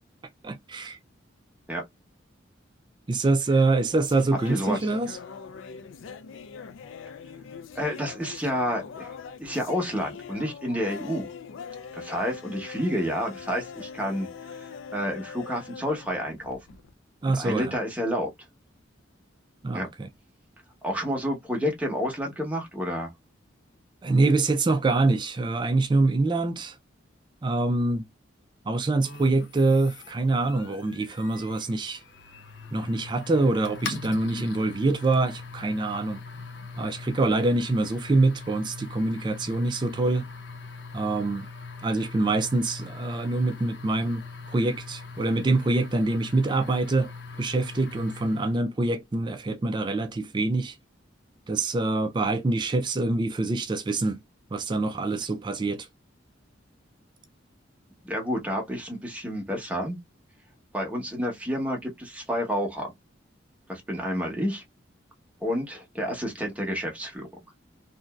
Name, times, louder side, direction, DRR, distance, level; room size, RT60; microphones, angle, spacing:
voice 1, 0.4-1.0 3.1-5.2 17.2-17.7 19.6-20.1 24.0-26.8 27.4-28.0 28.7-32.0 32.7-36.2 36.8-40.3 40.9-41.5 41.8-44.2 44.5-47.1 47.4-50.8 51.5-54.2 54.5-55.9, right 2 dB, 25° right, 0.3 m, -25 dB
sound 1, 3.6-16.9, left 6 dB, 80° left, 0.4 m, -42 dB
voice 2, 4.5-4.9 7.7-11.3 11.9-16.6 17.3-18.3 19.7-19.9 20.8-23.1 58.0-60.0 60.7-62.9 63.7-64.6 65.4-67.3, equal, 5° right, 0.9 m, -30 dB
sound 2, 29.0-48.6, left 4 dB, 65° left, 0.7 m, -41 dB
3.0 x 2.5 x 2.2 m
head